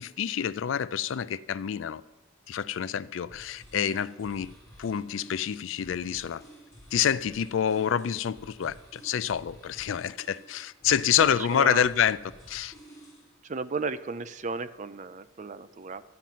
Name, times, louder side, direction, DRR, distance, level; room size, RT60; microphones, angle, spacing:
voice 1, 0.0-2.0 2.5-4.5 4.8-6.4 6.9-12.2 12.5-12.7, left 8 dB, 65° left, 0.4 m, -27 dB
sound 1, 3.2-13.3, equal, 15° left, 3.0 m, -52 dB
voice 2, 11.2-11.9 13.4-16.0, right 4 dB, 35° right, 0.5 m, -34 dB
13.0 x 5.8 x 9.2 m
head